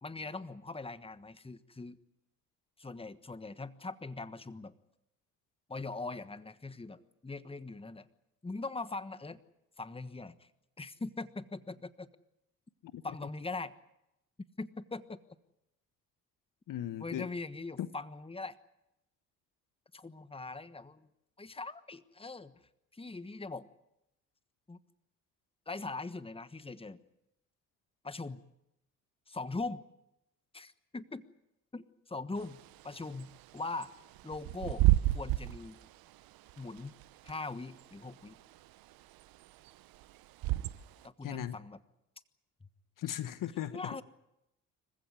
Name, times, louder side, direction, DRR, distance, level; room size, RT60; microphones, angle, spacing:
voice 1, 0.0-2.0 2.8-4.7 5.7-8.1 8.4-9.4 9.8-10.5 10.8-12.1 13.0-13.7 14.6-15.2 17.0-18.6 19.9-21.1 21.4-22.6 22.9-23.7 24.7-24.8 25.7-27.0 28.0-28.4 29.3-29.8 30.5-31.2 31.7-33.9 34.2-34.8 35.1-35.8 36.6-37.0 37.2-38.4 41.0-41.8 42.6-42.7 43.7-44.0, left 3 dB, 15° left, 1.4 m, -41 dB
voice 2, 16.7-17.3 17.8-17.9 41.2-41.6 43.0-43.8, left 12 dB, 60° left, 1.1 m, -37 dB
Bird / Wind, 32.4-41.1, right 18 dB, 70° right, 0.9 m, -33 dB
26.0 x 15.5 x 9.6 m
hypercardioid pair, 55°, 37 cm